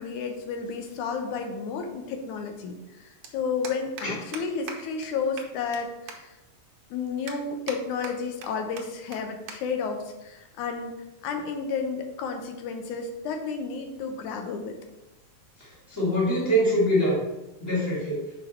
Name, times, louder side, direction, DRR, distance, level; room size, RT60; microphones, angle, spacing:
voice 1, 0.0-6.3 6.9-11.0 11.2-14.8, left 5 dB, 80° left, 4 dB, 2.2 m, -32 dB
sound 1, 3.2-3.3 3.6-4.1 4.3-4.4 4.7-4.8 5.0-5.1 5.4-5.8 6.1-6.2 6.6-6.7 7.3-7.8 8.0-8.5 8.8-8.9 9.1-9.2 9.5-9.6 9.9-10.1 10.9-11.2, right 5 dB, 65° right, 1.5 m, -39 dB
voice 2, 15.9-17.2 17.6-18.3, equal, 5° right, -6 dB, 1.4 m, -24 dB
6.1 x 5.0 x 4.3 m, 0.98 s
omnidirectional pair, 3.5 m